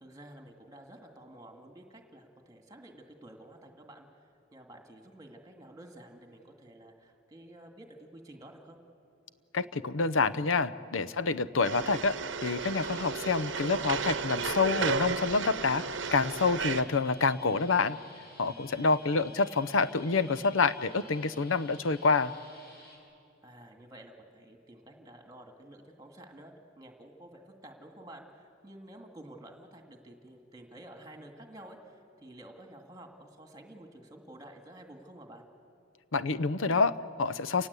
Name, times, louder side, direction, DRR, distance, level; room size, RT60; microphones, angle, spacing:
voice 1, 0.0-4.1 4.5-8.8 18.7-19.2 23.4-35.4, right 1 dB, 20° right, 3 dB, 2.1 m, -51 dB
voice 2, 9.5-12.2 12.4-15.8 16.1-18.0 18.4-22.3 36.1-37.7, left 4 dB, 80° left, 14 dB, 0.7 m, -27 dB
sound 1, 11.6-16.8, right 5 dB, 65° right, 0.9 m, -33 dB
sound 2, 12.6-23.0, left 2 dB, 55° left, 5.2 m, -54 dB
29.0 x 19.0 x 8.3 m, 2.6 s
head